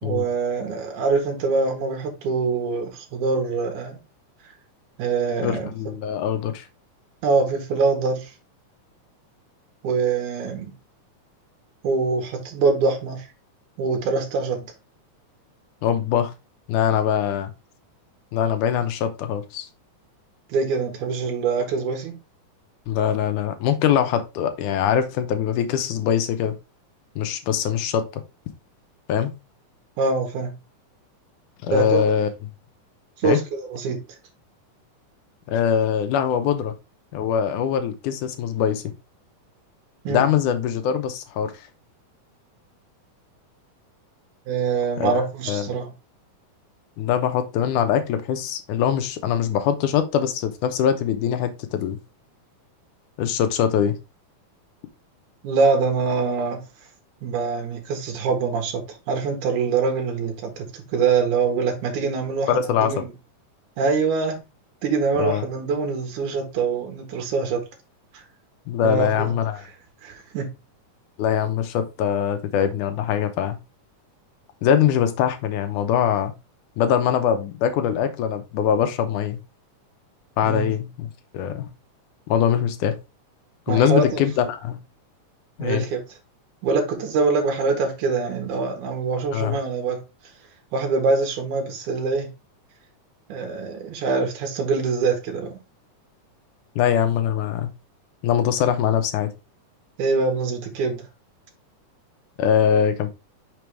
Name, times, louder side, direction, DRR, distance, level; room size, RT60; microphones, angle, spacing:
voice 1, 0.0-4.0 5.0-5.7 7.2-8.3 9.8-10.7 11.8-13.3 13.8-14.6 20.5-22.2 30.0-30.5 31.7-32.1 33.2-34.0 40.0-40.3 44.5-45.9 55.4-56.6 57.2-63.1 63.8-64.4 64.8-67.6 68.1-68.2 68.8-69.4 70.0-70.5 80.4-80.7 83.7-84.2 85.6-86.0 86.6-90.0 90.7-92.3 93.3-95.5 100.0-101.0, right 4 dB, 70° right, 2.9 m, -24 dB
voice 2, 5.4-6.7 15.8-16.3 16.7-17.5 18.3-19.7 22.9-26.6 27.2-28.1 29.1-29.3 31.6-32.3 33.2-33.4 35.5-36.7 37.1-38.8 40.1-41.7 45.0-45.7 47.0-52.0 53.2-54.0 62.5-62.9 65.2-65.4 68.7-69.6 71.2-73.6 74.6-76.3 76.8-79.4 80.4-81.1 81.3-81.7 82.3-83.0 83.7-84.8 85.6-85.8 89.3-89.6 96.8-97.7 98.2-99.3 102.4-103.1, left 9 dB, 75° left, 2.2 m, -22 dB
6.1 x 4.6 x 3.4 m
omnidirectional pair, 3.7 m